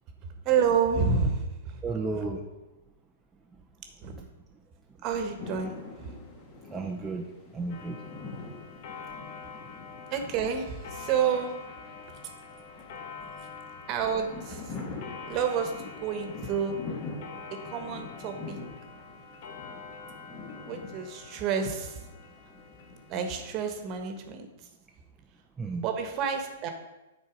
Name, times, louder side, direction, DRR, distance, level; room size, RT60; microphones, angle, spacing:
voice 1, 0.4-1.8 4.0-4.2 5.0-6.1 10.1-11.5 13.9-14.7 15.3-16.8 17.5-18.6 20.7-22.0 23.1-24.5 25.8-26.7, right 6 dB, 35° right, 5 dB, 1.3 m, -29 dB
voice 2, 1.8-2.5 6.7-7.2 7.5-8.0 8.5-8.6 25.6-25.8, right 3 dB, 15° right, 0 dB, 0.7 m, -33 dB
sound 1, 5.4-24.2, left 4 dB, 30° left, 1.6 m, -45 dB
Clock, 7.7-23.8, left 5 dB, 55° left, 1.1 m, -46 dB
9.8 x 4.1 x 5.2 m, 1.1 s
hypercardioid pair, 120°, 0 cm